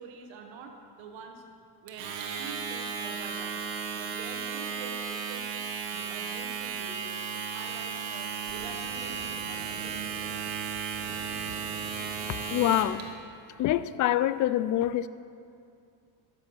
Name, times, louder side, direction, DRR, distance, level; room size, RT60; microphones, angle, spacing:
voice 1, 0.0-1.4 1.8-7.0 7.3-10.4, right 5 dB, 65° right, 2 dB, 1.5 m, -46 dB
Domestic sounds home sounds, 1.9-13.0, right 6 dB, 80° right, 1.5 m, -35 dB
sound 1, 7.6-8.0 8.3-13.2, equal, 10° left, 2.6 m, -50 dB
voice 2, 12.5-13.1 13.6-15.1, left 13 dB, 40° left, 15 dB, 0.4 m, -25 dB
12.5 x 7.0 x 5.6 m, 2.4 s
supercardioid pair, 100°, 48 cm